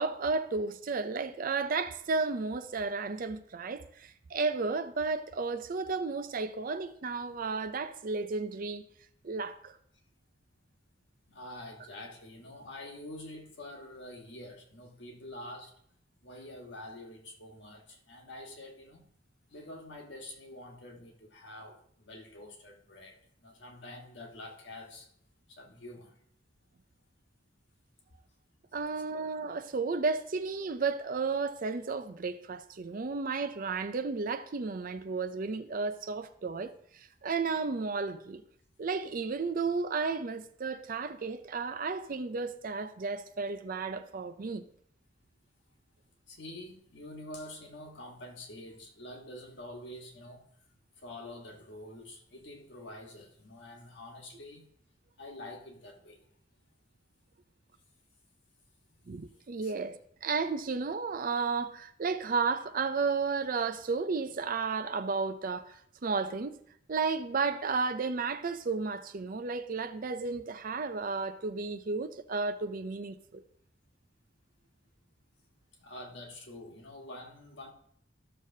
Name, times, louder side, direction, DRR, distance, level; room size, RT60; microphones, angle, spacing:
voice 1, 0.0-8.8 9.2-9.8 28.7-38.4 38.8-44.6 59.1-66.6 66.9-73.4, right 4 dB, 50° right, 0.5 m, -33 dB
voice 2, 11.3-15.7 16.2-19.1 19.5-25.1 25.5-26.1 46.3-50.5 51.0-54.7 55.2-56.2 59.6-59.7 75.8-77.7, left 1 dB, 65° left, 1.5 m, -47 dB
14.0 x 6.5 x 2.7 m
head